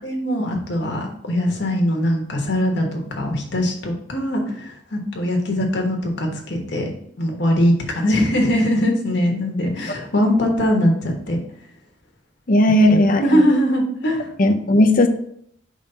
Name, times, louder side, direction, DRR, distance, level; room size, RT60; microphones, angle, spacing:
voice 1, 0.0-6.9 7.2-11.4 12.9-14.3, equal, 60° left, 1 dB, 1.3 m, -21 dB
voice 2, 12.5-13.4 14.4-15.1, left 1 dB, 45° left, 6 dB, 0.6 m, -15 dB
5.2 x 3.3 x 5.4 m, 0.67 s
head